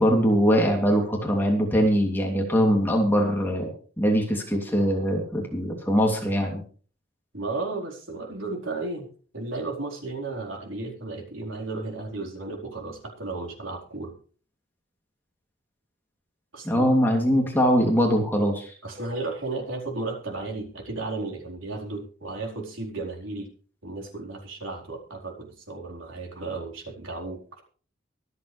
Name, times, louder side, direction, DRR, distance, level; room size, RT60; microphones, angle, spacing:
voice 1, 0.0-3.7 4.0-6.6 16.6-18.7, equal, 10° left, 0 dB, 2.9 m, -22 dB
voice 2, 7.3-9.1 9.3-14.1 16.5-16.9 18.8-23.5 23.8-27.6, right 3 dB, 80° right, 0 dB, 4.3 m, -34 dB
24.0 x 8.1 x 3.4 m, 0.42 s
head